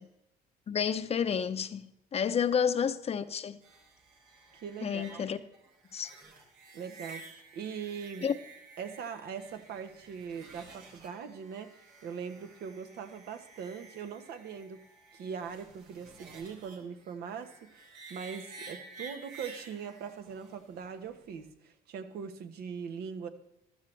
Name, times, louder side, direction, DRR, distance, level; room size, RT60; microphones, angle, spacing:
voice 1, 0.7-3.6 4.8-5.4 5.9-6.1 8.2-8.4, left 7 dB, 35° left, 0.7 m, -30 dB
sound 1, 3.6-21.5, right 4 dB, 90° right, 3.4 m, -52 dB
voice 2, 4.6-5.2 6.7-8.3 8.8-14.8 15.1-23.3, right 6 dB, 70° right, 1.3 m, -41 dB
15.0 x 12.5 x 3.3 m
cardioid pair, 110°, 17 cm